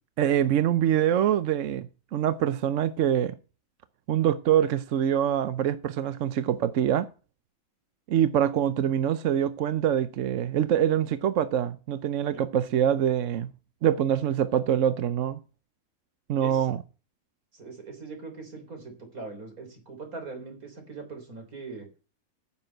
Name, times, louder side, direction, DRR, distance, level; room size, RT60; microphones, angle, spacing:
voice 1, 0.2-3.4 4.1-7.1 8.1-13.5 13.8-15.4 16.3-16.8, right 10 dB, 65° right, 1.0 m, -24 dB
voice 2, 16.4-16.8 17.5-21.9, right 4 dB, 85° right, 4.0 m, -41 dB
9.8 x 6.9 x 7.8 m
omnidirectional pair, 1.5 m